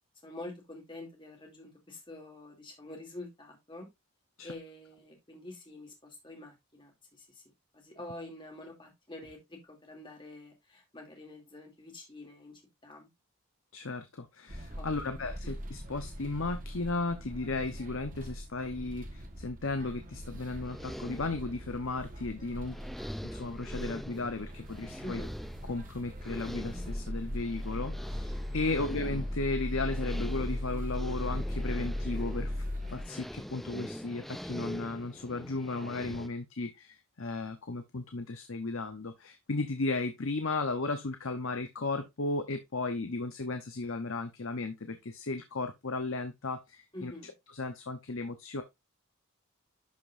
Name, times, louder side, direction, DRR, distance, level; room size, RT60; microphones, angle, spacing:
voice 1, 0.2-3.9 4.4-7.4 7.8-13.1 14.8-15.1 25.0-25.3 46.9-47.3, left 2 dB, 20° left, 2.7 m, -47 dB
voice 2, 13.7-22.8 23.2-25.2 25.6-32.6 32.9-47.1 47.5-48.6, left 3 dB, 65° left, 0.9 m, -35 dB
sound 1, 14.5-33.0, equal, 35° right, 1.3 m, -39 dB
sound 2, 20.3-36.3, equal, ahead, 0.3 m, -44 dB
11.5 x 5.2 x 2.6 m
head